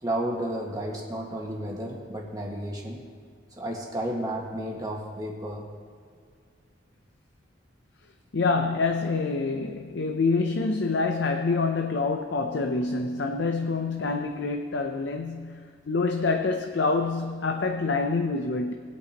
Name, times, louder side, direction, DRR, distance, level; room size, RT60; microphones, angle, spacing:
voice 1, 0.0-3.0 3.6-5.7, right 1 dB, 20° right, -2 dB, 1.7 m, -32 dB
voice 2, 8.3-18.7, left 3 dB, 65° left, 5 dB, 0.6 m, -26 dB
20.5 x 8.4 x 3.0 m, 2.1 s
head